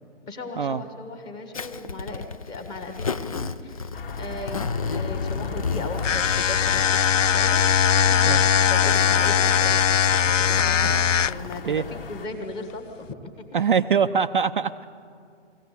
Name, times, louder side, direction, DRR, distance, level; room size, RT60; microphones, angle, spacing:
voice 1, 0.3-9.8 10.3-13.4, left 2 dB, 10° left, 5 dB, 1.3 m, -37 dB
Zipper (clothing), 1.5-11.6, left 4 dB, 30° left, 0.5 m, -34 dB
sound 1, 3.9-12.3, left 4 dB, 50° left, 1.7 m, -37 dB
sound 2, 6.0-11.5, left 8 dB, 85° left, 0.6 m, -20 dB
voice 2, 13.5-14.9, right 6 dB, 45° right, 7 dB, 0.5 m, -23 dB
23.0 x 16.0 x 8.2 m, 2.3 s
figure-of-eight pair, 145°, 37 cm